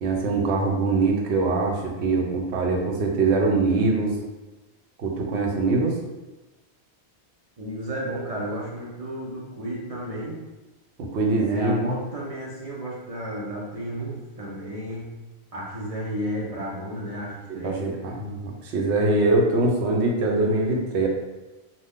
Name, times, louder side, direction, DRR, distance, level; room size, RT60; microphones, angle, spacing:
voice 1, 0.0-4.2 5.0-6.0 11.0-12.0 17.5-21.1, right 3 dB, 80° right, 0 dB, 0.9 m, -23 dB
voice 2, 7.6-10.4 11.4-15.2 15.5-17.8, equal, 45° right, -5 dB, 0.5 m, -33 dB
2.5 x 2.2 x 3.4 m, 1.1 s
omnidirectional pair, 1.1 m